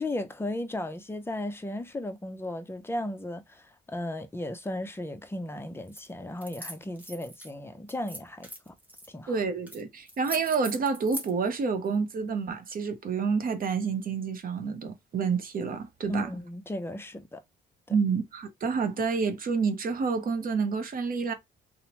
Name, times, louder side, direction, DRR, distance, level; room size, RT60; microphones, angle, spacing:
voice 1, 0.0-8.7 9.1-9.3 16.1-17.4, left 1 dB, 10° left, 0.5 m, -35 dB
sound 1, 5.9-6.1 6.4-7.5 7.9-9.1 9.7-9.8 10.1-11.3, equal, 10° right, 0.8 m, -41 dB
voice 2, 9.3-16.3 17.9-21.3, right 5 dB, 45° right, 0.7 m, -29 dB
2.9 x 2.0 x 2.9 m
cardioid pair, 90°, 20 cm